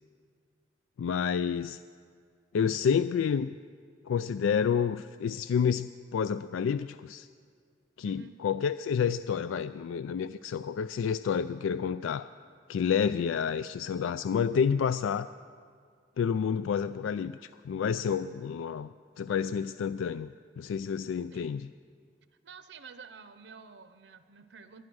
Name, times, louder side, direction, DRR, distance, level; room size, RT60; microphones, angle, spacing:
voice 1, 1.0-1.8 2.5-3.6 4.1-7.3 8.0-12.3 12.7-15.3 16.2-21.7, left 7 dB, 85° left, 14 dB, 0.3 m, -29 dB
voice 2, 8.0-8.4 21.3-21.5 22.4-24.8, right 5 dB, 60° right, 11 dB, 0.7 m, -50 dB
24.0 x 9.7 x 6.2 m, 2.1 s
head